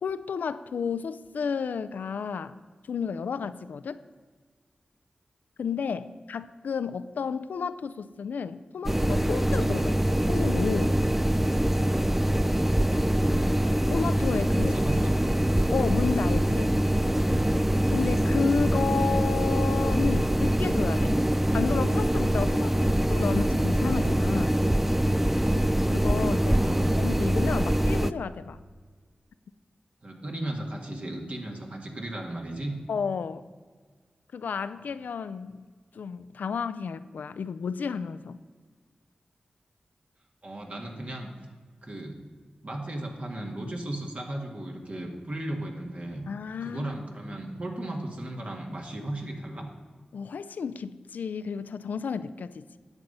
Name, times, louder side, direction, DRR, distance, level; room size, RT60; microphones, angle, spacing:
voice 1, 0.0-2.5 2.9-4.0 5.6-11.0 13.9-14.7 15.7-16.7 17.9-21.2 21.5-24.6 25.9-26.6 27.0-28.6 32.9-33.5 34.3-35.7 35.9-38.4 46.3-46.9 50.1-52.8, left 6 dB, 90° left, 14 dB, 0.4 m, -32 dB
sound 1, 8.8-28.1, right 1 dB, 10° right, 0.4 m, -24 dB
voice 2, 14.5-15.2 22.5-23.0 25.2-25.8 26.2-26.9 30.0-32.8 40.4-41.3 41.8-42.2 42.6-46.3 46.6-49.7, right 1 dB, 50° right, 2 dB, 2.0 m, -36 dB
10.5 x 7.6 x 5.5 m, 1.5 s
cardioid pair, 40°, 3 cm